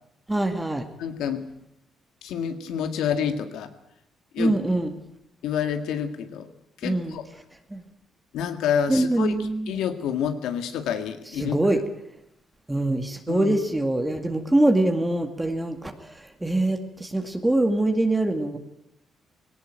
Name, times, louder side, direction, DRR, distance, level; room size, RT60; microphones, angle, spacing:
voice 1, 0.3-0.9 4.4-4.9 6.8-7.2 7.7-7.8 8.9-9.7 11.4-11.8 12.7-15.9 16.4-18.6, right 1 dB, 10° right, 5 dB, 2.1 m, -23 dB
voice 2, 1.0-1.4 2.2-3.7 4.3-4.5 5.4-6.5 6.8-7.3 8.3-9.4 9.7-11.6 13.3-13.6, left 8 dB, 85° left, 8 dB, 2.0 m, -28 dB
18.5 x 18.0 x 9.1 m, 0.79 s
cardioid pair, 90°, 0 cm